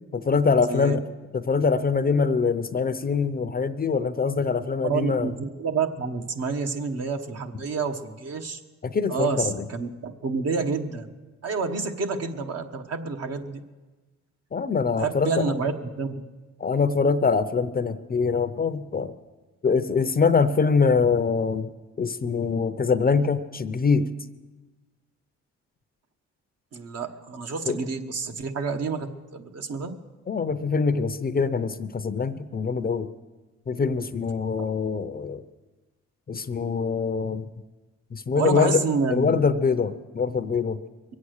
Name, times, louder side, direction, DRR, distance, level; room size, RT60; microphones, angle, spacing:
voice 1, 0.1-1.0 1.3-5.3 8.8-9.5 14.5-15.5 16.6-19.1 19.6-21.7 22.0-24.1 27.7-27.8 30.3-33.1 33.7-35.4 36.3-37.5 38.1-38.8 39.1-40.8, left 5 dB, 30° left, 11 dB, 0.6 m, -24 dB
voice 2, 0.7-1.0 4.8-8.6 9.1-11.1 11.4-13.6 15.0-16.1 26.7-29.9 38.3-39.4, right 4 dB, 55° right, 5 dB, 1.3 m, -28 dB
22.0 x 8.5 x 6.5 m, 1.2 s
cardioid pair, 90°, 30 cm